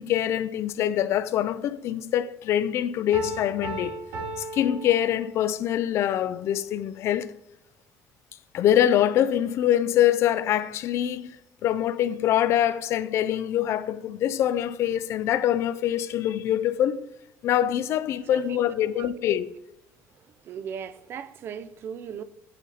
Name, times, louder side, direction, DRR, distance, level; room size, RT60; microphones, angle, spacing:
voice 1, 0.0-4.0 4.5-7.3 8.5-11.4 11.6-17.0 17.4-19.5, left 11 dB, 50° left, 0.4 m, -24 dB
Piano, 3.1-5.7, right 2 dB, 70° right, 2.3 m, -36 dB
voice 2, 20.4-22.2, right 7 dB, 40° right, 0.4 m, -37 dB
9.0 x 4.0 x 4.1 m
cardioid pair, 165°, 6 cm